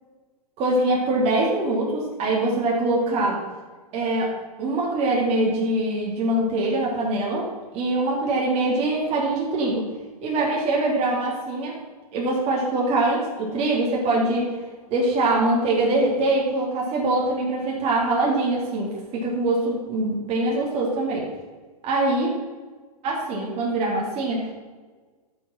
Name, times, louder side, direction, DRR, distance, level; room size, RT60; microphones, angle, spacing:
voice 1, 0.6-3.5 3.9-9.9 10.2-11.8 12.1-14.5 14.9-21.3 21.8-22.3 23.0-24.5, right 2 dB, 30° right, -3 dB, 2.8 m, -23 dB
11.5 x 6.5 x 5.8 m, 1.4 s
hypercardioid pair, 130°, 20 cm